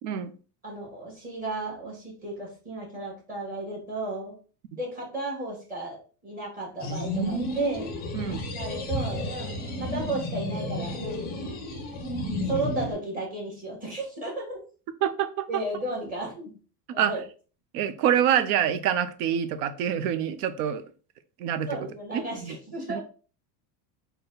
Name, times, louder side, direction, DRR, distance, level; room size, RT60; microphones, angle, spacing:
voice 1, 0.0-0.3 8.1-8.5 15.0-15.5 17.0-17.1 17.7-20.8 21.4-21.7 22.1-22.6 22.9-23.0, right 9 dB, 75° right, 11 dB, 0.7 m, -26 dB
voice 2, 0.6-4.4 4.7-6.0 6.2-7.9 8.5-11.4 12.5-14.6 15.5-16.5 16.9-17.2 21.7-23.0, right 2 dB, 20° right, -3 dB, 1.2 m, -34 dB
sound 1, 6.8-12.9, left 1 dB, 20° left, 0.5 m, -32 dB
3.9 x 2.2 x 3.8 m, 0.38 s
cardioid pair, 170°, 46 cm